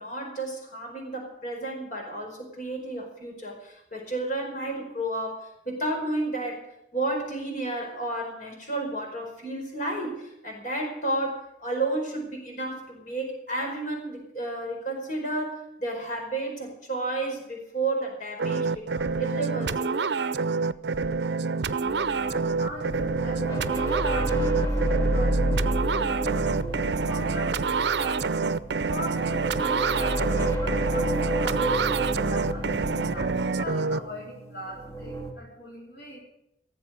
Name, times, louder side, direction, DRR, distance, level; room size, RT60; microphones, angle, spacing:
voice 1, 0.0-20.0, right 2 dB, 45° left, 1 dB, 4.8 m, -32 dB
sound 1, 18.4-34.0, right 4 dB, 75° right, 0.6 m, -27 dB
sound 2, 21.8-35.3, right 1 dB, 15° left, 2.3 m, -30 dB
voice 2, 22.2-28.3 28.9-31.7 32.2-36.2, left 1 dB, 70° left, -3 dB, 4.2 m, -40 dB
17.5 x 7.4 x 9.6 m, 0.81 s
head